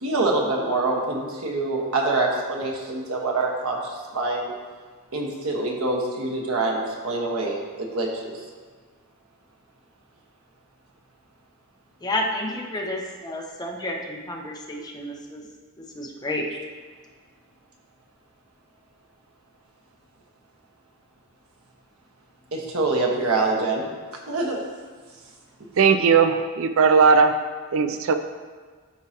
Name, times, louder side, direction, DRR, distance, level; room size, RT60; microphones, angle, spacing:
voice 1, 0.0-4.5 5.1-8.4 22.5-23.9 24.3-24.6, right 2 dB, 85° right, 0 dB, 1.3 m, -25 dB
voice 2, 12.0-15.5 15.8-16.4, left 1 dB, 20° left, -1 dB, 0.9 m, -30 dB
voice 3, 25.8-27.4 27.7-28.2, right 5 dB, 65° right, 9 dB, 0.4 m, -18 dB
12.0 x 4.7 x 2.9 m, 1.5 s
head